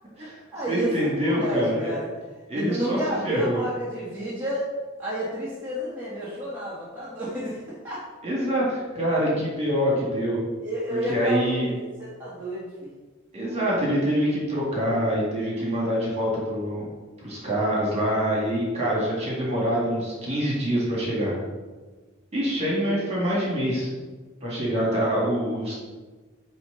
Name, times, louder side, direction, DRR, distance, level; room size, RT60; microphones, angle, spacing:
voice 1, 0.2-2.1 2.5-4.7 5.0-8.0 10.6-12.9 13.4-13.6 23.2-23.4, equal, 10° right, -10 dB, 1.5 m, -31 dB
voice 2, 0.7-1.9 2.5-3.0 3.2-3.6 8.2-10.4 10.9-11.7 13.3-16.9 17.2-21.4 22.3-23.9 24.4-25.7, equal, 30° right, -5 dB, 2.0 m, -25 dB
9.2 x 3.2 x 4.0 m, 1.3 s
head